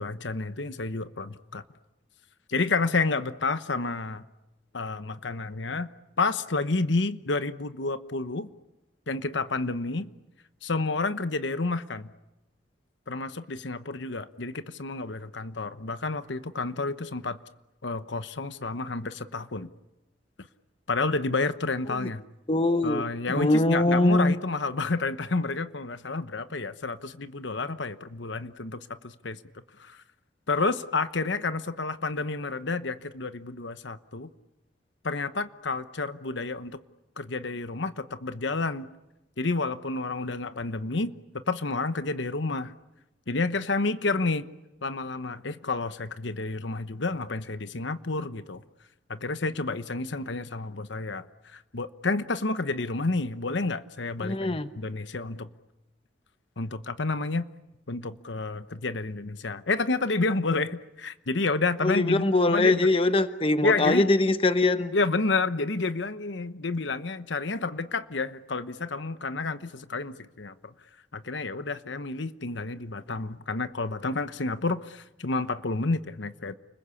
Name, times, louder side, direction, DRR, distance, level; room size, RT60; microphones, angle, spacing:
voice 1, 0.0-1.6 2.5-4.2 4.7-5.9 6.2-8.5 9.1-10.1 10.6-12.1 13.1-17.4 17.8-19.7 20.9-22.2 22.8-29.4 29.8-30.0 30.5-34.3 35.0-36.8 37.2-38.9 39.4-41.1 41.5-42.7 43.3-44.4 44.8-48.6 49.1-55.5 56.6-57.4 57.9-62.9 63.6-64.1 64.9-70.7 71.1-76.5, left 3 dB, 75° left, 1.0 m, -30 dB
voice 2, 22.5-23.0 23.3-24.3 54.2-54.7 61.8-64.9, left 2 dB, 30° left, 1.0 m, -22 dB
30.0 x 21.5 x 8.4 m
head